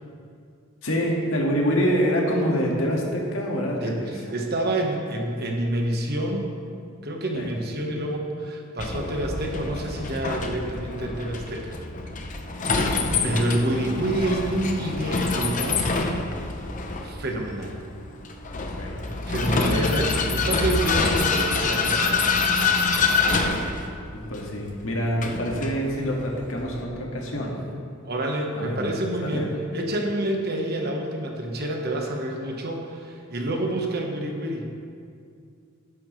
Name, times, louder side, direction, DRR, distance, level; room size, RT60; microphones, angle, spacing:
voice 1, 0.8-4.1 7.3-7.5 12.6-13.8 18.7-19.0 19.5-19.9 24.1-27.6 28.5-28.8 29.2-29.5, equal, 75° left, -2 dB, 1.8 m, -26 dB
voice 2, 3.8-6.5 7.0-11.7 13.2-15.9 17.0-17.7 19.3-22.7 28.0-29.5 29.7-34.7, right 1 dB, 50° right, 1 dB, 1.2 m, -28 dB
Vehicle, 8.8-26.9, left 4 dB, 40° left, 0.7 m, -26 dB
12.5 x 9.6 x 3.2 m, 2.3 s
head